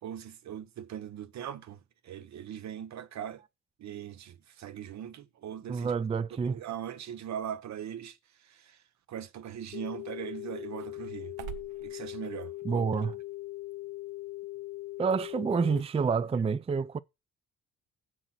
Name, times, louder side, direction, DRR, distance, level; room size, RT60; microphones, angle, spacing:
voice 1, 0.0-3.4 3.8-5.9 6.3-8.8 9.1-11.3 11.8-12.9, right 9 dB, 65° right, 1.0 m, -40 dB
voice 2, 5.7-6.6 12.6-13.1 15.0-17.0, right 5 dB, 20° right, 0.4 m, -28 dB
sound 1, 9.6-15.8, right 12 dB, 90° right, 0.8 m, -51 dB
sound 2, 9.7-15.8, left 17 dB, 55° left, 0.7 m, -40 dB
7.6 x 6.4 x 5.8 m
cardioid pair, 90°, 30 cm